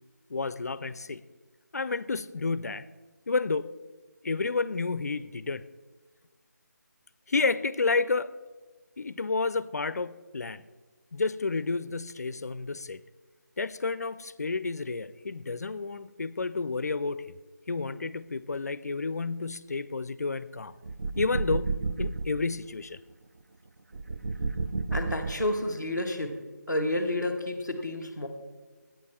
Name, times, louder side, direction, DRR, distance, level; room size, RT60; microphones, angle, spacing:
voice 1, 0.3-1.2 1.7-2.9 3.3-3.7 4.2-5.6 7.3-8.3 9.0-10.6 11.1-13.0 13.6-17.4 17.7-20.7 21.2-21.7 22.0-23.0, left 4 dB, 60° left, 16 dB, 0.4 m, -30 dB
sound 1, 20.8-22.4 23.9-25.8, right 3 dB, 55° right, 0.5 m, -31 dB
voice 2, 24.9-26.4 26.7-28.3, left 1 dB, 5° right, -8 dB, 0.5 m, -30 dB
9.5 x 8.9 x 4.3 m, 1.3 s
figure-of-eight pair, 175°, 10 cm